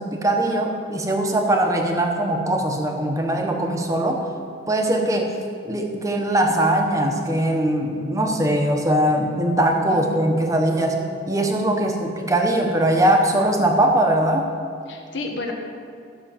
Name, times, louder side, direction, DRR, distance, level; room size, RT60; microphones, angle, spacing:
voice 1, 0.0-4.2 4.7-5.3 5.6-14.5, right 1 dB, 15° right, 2 dB, 1.1 m, -21 dB
voice 2, 9.9-10.3 11.8-12.1 14.9-15.5, left 2 dB, 60° left, 2 dB, 1.5 m, -32 dB
14.0 x 6.1 x 7.1 m, 2.3 s
head